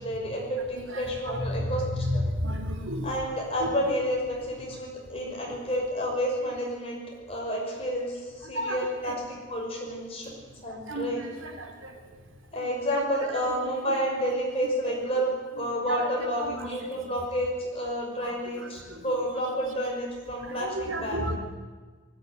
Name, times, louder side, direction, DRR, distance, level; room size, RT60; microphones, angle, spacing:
voice 1, 0.0-1.8 2.1-2.2 3.0-7.0 7.3-9.2 9.5-10.3 10.6-11.2 12.5-21.2, equal, 30° left, -2 dB, 6.1 m, -30 dB
voice 2, 0.9-3.2 3.6-3.9 4.6-4.8 5.1-5.6 8.4-9.2 10.5-12.0 12.6-13.5 13.9-14.0 14.8-15.2 15.6-17.1 18.2-19.1 20.4-21.4, equal, 75° right, 4 dB, 2.9 m, -34 dB
19.5 x 15.5 x 9.6 m, 1.4 s
head